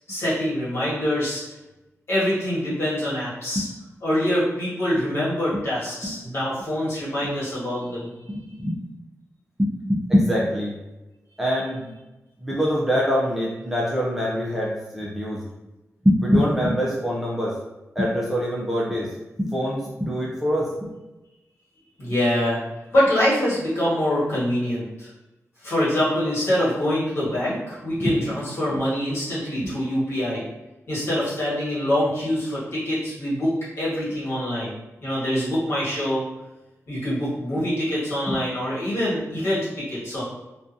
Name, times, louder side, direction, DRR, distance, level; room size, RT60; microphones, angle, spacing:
voice 1, 0.1-1.4 2.1-3.7 4.0-8.1 22.0-22.6 22.9-25.1 25.6-30.4 30.9-34.7 35.0-36.2 36.9-40.2, left 1 dB, 55° left, -9 dB, 1.3 m, -24 dB
voice 2, 8.3-8.7 9.6-10.8 11.4-11.9 12.4-15.4 16.0-17.5 18.0-19.1 19.4-20.7 28.0-28.1 38.3-38.4, equal, 5° right, -6 dB, 0.4 m, -23 dB
2.7 x 2.3 x 2.4 m, 1.0 s
wide cardioid pair, 160°, 5 cm